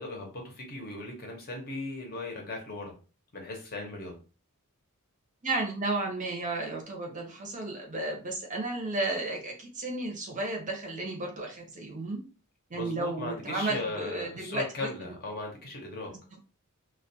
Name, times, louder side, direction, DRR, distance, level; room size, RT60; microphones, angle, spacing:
voice 1, 0.0-2.9 3.3-4.1 12.7-16.1, left 2 dB, 45° left, 1 dB, 0.7 m, -37 dB
voice 2, 5.4-12.2 12.7-15.1 16.1-16.2, right 2 dB, 35° right, 1 dB, 0.6 m, -33 dB
2.2 x 2.2 x 2.7 m, 0.35 s
head